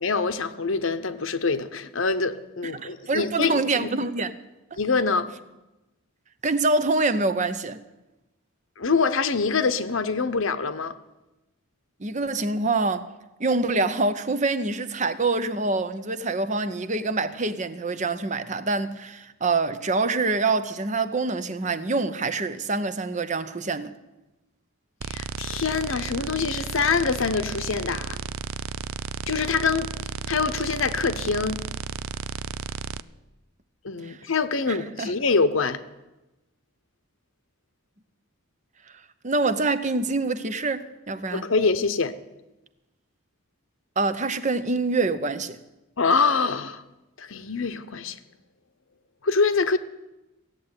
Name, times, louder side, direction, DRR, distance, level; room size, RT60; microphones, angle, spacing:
voice 1, 0.0-3.9 4.8-5.3 8.8-11.0 25.0-28.2 29.3-29.9 30.3-31.6 33.8-35.8 41.3-42.1 46.0-46.8 47.2-48.2 49.2-49.8, left 4 dB, 70° left, 0.9 m, -25 dB
voice 2, 2.6-4.3 6.4-7.8 12.0-13.1 13.4-23.9 34.0-34.2 34.7-35.1 39.2-41.4 44.0-45.6, right 3 dB, 35° right, 0.8 m, -25 dB
sound 1, 25.0-33.0, right 6 dB, 75° right, 0.5 m, -33 dB
16.5 x 7.7 x 9.7 m
head